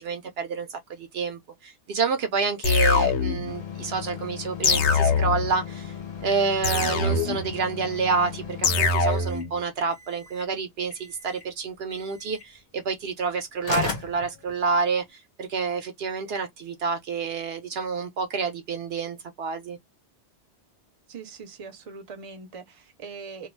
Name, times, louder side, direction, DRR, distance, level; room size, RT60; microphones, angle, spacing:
voice 1, 0.0-5.9 6.2-19.8, right 5 dB, 70° right, 0.8 m, -28 dB
sound 1, 2.6-3.5 4.6-5.5 6.6-7.5 8.6-9.5, left 4 dB, 85° left, 0.9 m, -23 dB
sound 2, 3.5-9.5 9.9-10.5 10.9-11.5 11.9-12.5 13.3-13.4 13.6-15.0, left 6 dB, 45° left, 0.8 m, -37 dB
voice 2, 21.1-23.5, right 5 dB, 35° right, 0.7 m, -41 dB
2.4 x 2.2 x 3.1 m
omnidirectional pair, 1.1 m